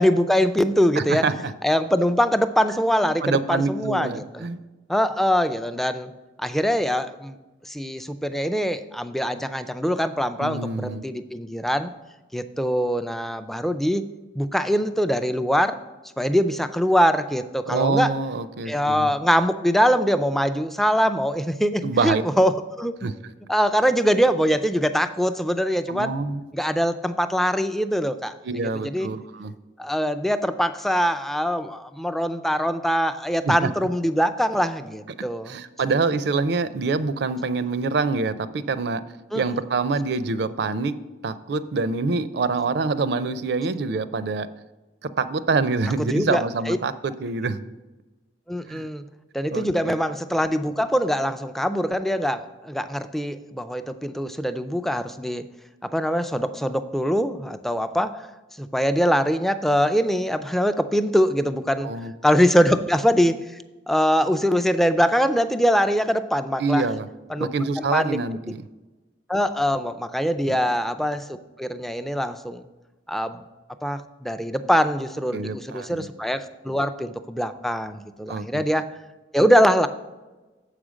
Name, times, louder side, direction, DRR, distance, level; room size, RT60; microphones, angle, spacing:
voice 1, 0.0-1.3 1.6-4.4 4.9-6.1 6.4-7.4 7.6-11.9 12.3-14.0 14.4-15.8 16.2-18.1 18.7-23.1 23.5-26.1 26.5-28.3 28.6-29.1 29.8-35.5 39.3-39.6 46.0-46.8 48.5-49.0 49.3-55.4 55.8-58.3 58.6-61.9 62.2-63.5 63.9-66.9 67.3-67.5 67.8-68.2 69.3-72.6 73.1-73.4 73.8-78.9 79.3-79.9, equal, ahead, 10 dB, 0.3 m, -23 dB
voice 2, 1.0-1.5 3.2-4.6 10.4-11.0 17.7-19.1 21.8-22.2 23.0-23.1 25.9-26.4 28.4-29.5 33.4-33.7 35.5-39.0 39.4-40.9 41.2-44.5 45.2-47.6 48.7-48.9 49.5-49.9 61.8-62.1 66.6-67.1 67.4-68.6 70.4-70.6 75.3-76.1 78.3-78.6, right 4 dB, 65° right, 14 dB, 0.4 m, -25 dB
7.5 x 4.9 x 6.3 m, 1.1 s
head